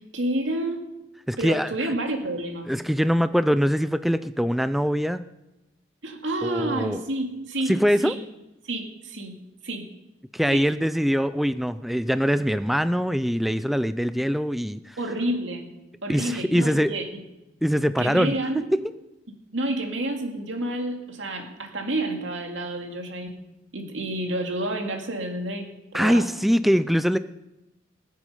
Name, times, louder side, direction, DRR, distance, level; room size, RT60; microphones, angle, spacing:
voice 1, 0.1-0.9 1.4-2.7 6.0-8.2 8.6-9.4 9.6-9.9 10.5-10.6 15.0-15.7 16.0-17.2 18.0-18.7 19.5-23.3 23.7-26.3, right 1 dB, 85° right, 3 dB, 2.4 m, -29 dB
voice 2, 1.3-1.7 2.7-5.2 6.4-7.0 7.7-8.1 10.3-15.0 16.1-16.9 17.6-18.6 25.9-27.2, equal, ahead, 12 dB, 0.4 m, -23 dB
20.0 x 8.3 x 5.5 m, 0.96 s
head